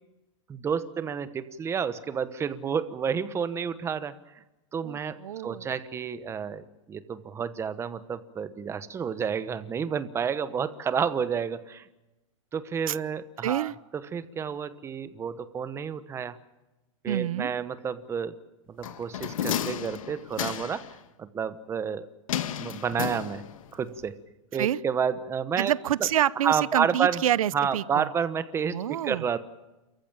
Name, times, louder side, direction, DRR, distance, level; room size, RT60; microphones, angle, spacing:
voice 1, 0.5-4.1 4.7-5.2 5.4-11.8 12.5-13.7 14.1-16.4 17.0-18.3 18.7-22.1 22.6-23.4 23.7-24.2 24.5-25.7 26.4-27.2 27.5-29.4, right 7 dB, 15° right, 13 dB, 1.0 m, -30 dB
voice 2, 4.8-5.7 12.9-13.0 13.4-13.7 17.1-17.5 24.6-24.8 25.6-28.1 28.7-29.3, right 11 dB, 85° right, 20 dB, 0.7 m, -27 dB
sound 1, 18.8-20.9 22.3-23.7 24.0-24.1, left 10 dB, 80° left, 1.5 m, -32 dB
28.5 x 14.5 x 8.9 m, 1.0 s
supercardioid pair, 150°, 17 cm